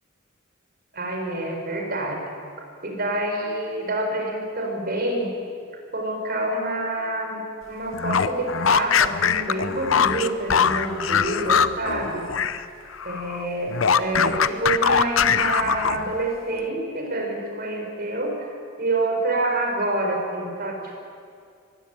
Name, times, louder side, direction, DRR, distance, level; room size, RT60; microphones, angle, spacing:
voice 1, 0.9-2.2 2.8-5.3 5.9-7.4 7.7-12.3 13.0-21.0, right 2 dB, 50° right, 2 dB, 4.9 m, -27 dB
sound 1, 7.9-12.6 12.9-16.2, left 7 dB, 80° left, 0.7 m, -22 dB
24.0 x 16.0 x 9.1 m, 2.3 s
head